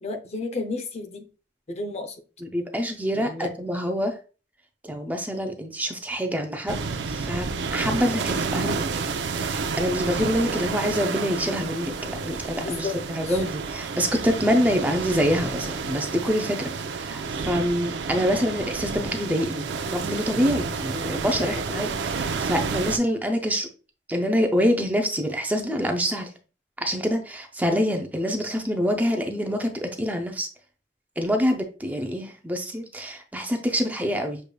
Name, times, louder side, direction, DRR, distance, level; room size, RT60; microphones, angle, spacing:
voice 1, 0.0-1.2 1.7-2.2 3.2-3.5 12.6-12.9 13.2-13.4 21.4-21.8, left 3 dB, 40° left, 6 dB, 0.6 m, -32 dB
voice 2, 2.4-4.2 4.8-6.8 7.1-8.8 9.4-23.7 24.1-26.3 26.8-30.5 31.2-34.4, equal, 10° right, 4 dB, 0.5 m, -26 dB
sound 1, 6.7-23.0, right 4 dB, 85° right, 0.5 m, -30 dB
6.5 x 3.2 x 2.2 m, 0.36 s
head